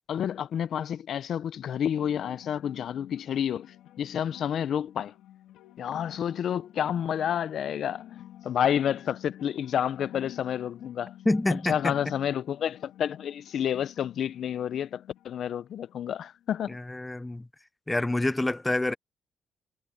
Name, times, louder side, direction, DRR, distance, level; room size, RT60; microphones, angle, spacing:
voice 1, 0.1-5.2 5.8-8.1 8.4-11.1 11.5-16.8, left 9 dB, 65° left, 0.6 m, -30 dB
sound 1, 1.5-16.5, left 12 dB, 90° left, 3.1 m, -50 dB
voice 2, 11.2-12.0 16.7-17.5 17.9-18.9, left 2 dB, 15° left, 0.7 m, -27 dB
cardioid pair, 90°, 0 cm